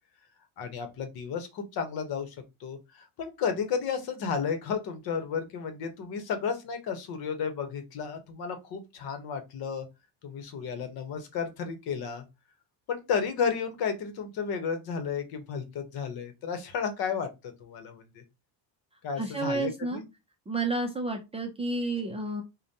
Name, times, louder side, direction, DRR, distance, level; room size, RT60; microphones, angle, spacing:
voice 1, 0.6-9.9 10.2-12.2 12.9-17.3 17.6-18.2 19.0-20.0, left 6 dB, 60° left, 7 dB, 1.0 m, -33 dB
voice 2, 19.2-20.0 20.5-22.4, right 2 dB, 15° right, 3 dB, 0.5 m, -30 dB
4.9 x 2.2 x 2.7 m, 0.24 s
cardioid pair, 135°, 42 cm